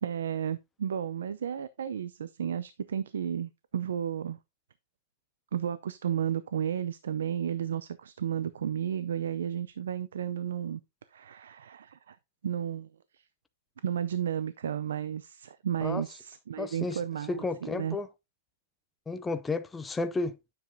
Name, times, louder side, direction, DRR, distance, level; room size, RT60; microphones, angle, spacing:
voice 1, 0.0-4.4 5.5-10.8 11.1-12.2 12.4-13.2 13.8-18.0, right 9 dB, 80° right, 0.5 m, -33 dB
voice 2, 16.6-17.0 17.3-18.1 19.1-20.4, left 3 dB, 10° left, 0.5 m, -32 dB
9.4 x 7.2 x 2.7 m
hypercardioid pair, 140°, 0 cm